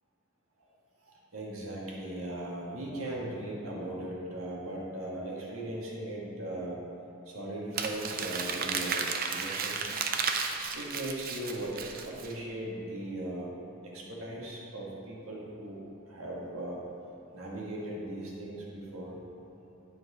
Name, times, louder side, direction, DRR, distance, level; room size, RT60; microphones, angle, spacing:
voice 1, 1.3-6.8 7.3-9.0 9.3-9.9 10.7-11.8 12.2-13.5 13.9-15.8 16.1-16.8 17.3-19.2, right 1 dB, 85° right, -4 dB, 1.7 m, -38 dB
Crumpling crinkling, 7.7-12.3, right 5 dB, 45° right, 0.5 m, -33 dB
10.0 x 4.6 x 4.9 m, 2.9 s
head